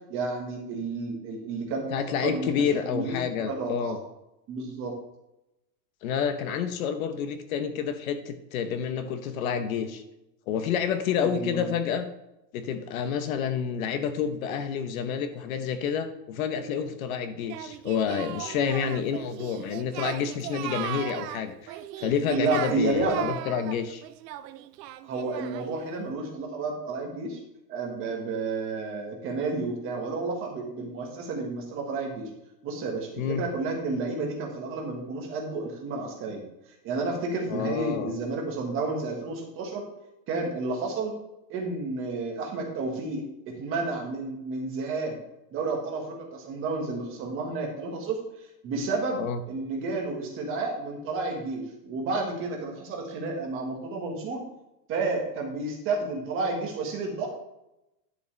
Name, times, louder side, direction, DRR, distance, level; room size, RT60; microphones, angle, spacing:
voice 1, 0.1-1.9 2.2-4.0 4.5-4.9 11.2-11.7 18.8-19.0 22.3-23.3 25.0-27.4 27.7-32.3 32.6-36.4 36.8-39.8 40.3-41.2 41.5-45.2 45.5-49.2 49.5-54.4 54.9-57.3, right 3 dB, 25° right, 1 dB, 1.5 m, -31 dB
voice 2, 1.9-4.0 6.0-10.0 10.5-12.1 12.5-24.0 33.2-33.4 37.5-38.1 49.2-49.4, left 7 dB, 55° left, 10 dB, 0.9 m, -29 dB
Singing, 17.5-25.8, right 13 dB, 75° right, 0.7 m, -38 dB
11.0 x 6.8 x 3.3 m, 0.89 s
supercardioid pair, 170°, 50 cm